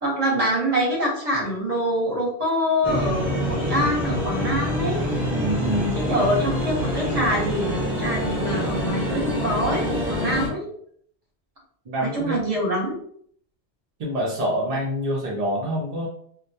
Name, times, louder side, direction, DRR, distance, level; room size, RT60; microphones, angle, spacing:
voice 1, 0.0-5.1 5.9-10.7 12.0-13.0, equal, 35° right, -3 dB, 0.8 m, -25 dB
sound 1, 2.8-10.5, equal, ahead, 0.7 m, -26 dB
voice 2, 5.3-6.0 11.9-12.4 14.0-16.1, right 1 dB, 55° right, -3 dB, 0.4 m, -26 dB
2.1 x 2.1 x 2.7 m, 0.62 s
omnidirectional pair, 1.1 m